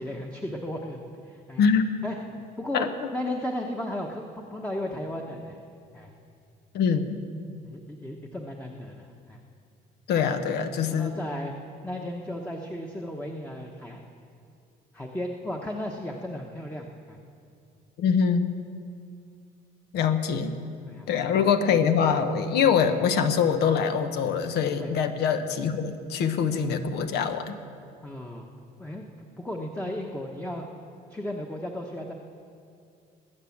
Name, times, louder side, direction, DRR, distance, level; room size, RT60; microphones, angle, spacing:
voice 1, 0.0-1.7 2.0-2.9 3.1-5.6 5.9-6.1 7.6-9.4 10.2-10.5 10.8-11.5 11.8-14.0 14.9-17.2 20.8-21.1 24.8-24.9 28.0-28.5 28.8-29.0 29.4-30.6 31.1-32.1, left 1 dB, 10° left, 1 dB, 1.1 m, -35 dB
voice 2, 1.6-1.9 2.7-2.9 6.7-7.2 10.1-11.1 18.0-18.5 19.9-20.5 21.1-27.6, left 6 dB, 80° left, 8 dB, 1.1 m, -24 dB
19.5 x 8.2 x 7.2 m, 2.4 s
cardioid pair, 110°, 17 cm